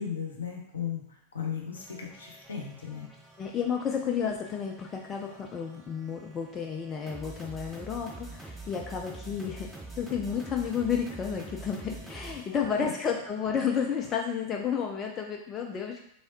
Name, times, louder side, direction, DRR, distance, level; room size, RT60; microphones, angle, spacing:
voice 1, 0.0-3.1 12.5-12.9, left 7 dB, 70° left, 0 dB, 0.8 m, -36 dB
sound 1, 1.7-13.8, right 2 dB, 5° right, 0.7 m, -46 dB
voice 2, 3.4-9.7 10.0-16.0, left 7 dB, 25° left, 2 dB, 0.4 m, -31 dB
3.4 x 3.4 x 2.7 m, 0.71 s
figure-of-eight pair, 90°, 0 cm